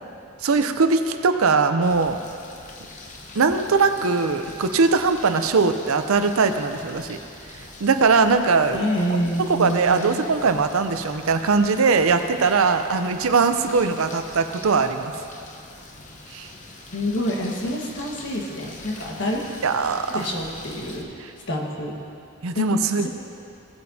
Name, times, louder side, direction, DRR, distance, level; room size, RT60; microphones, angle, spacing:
voice 1, 0.4-2.2 3.4-7.2 7.8-8.9 9.5-15.1 16.3-16.5 19.6-20.3 22.4-23.1, right 4 dB, 70° right, 8 dB, 0.6 m, -20 dB
sound 1, 1.8-21.0, left 2 dB, 35° left, 0.9 m, -43 dB
voice 2, 8.7-10.2 16.9-19.4 20.1-21.1 21.5-21.9 22.5-22.6 23.0-23.1, equal, 60° left, -1 dB, 1.5 m, -27 dB
17.5 x 8.5 x 2.8 m, 2.5 s
head